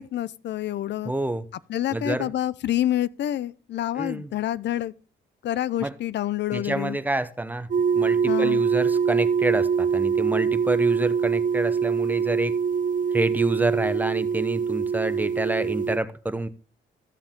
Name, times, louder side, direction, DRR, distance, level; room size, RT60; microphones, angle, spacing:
voice 1, 0.0-1.1 1.7-4.9 5.4-7.0 8.3-8.6, left 12 dB, 60° left, 0.5 m, -27 dB
voice 2, 1.0-1.5 1.9-2.3 4.0-4.3 5.8-5.9 6.5-12.6 13.1-16.5, right 2 dB, 10° right, 0.8 m, -28 dB
sound 1, 7.7-16.0, right 6 dB, 40° right, 0.6 m, -24 dB
13.5 x 7.0 x 3.7 m
cardioid pair, 90°, 20 cm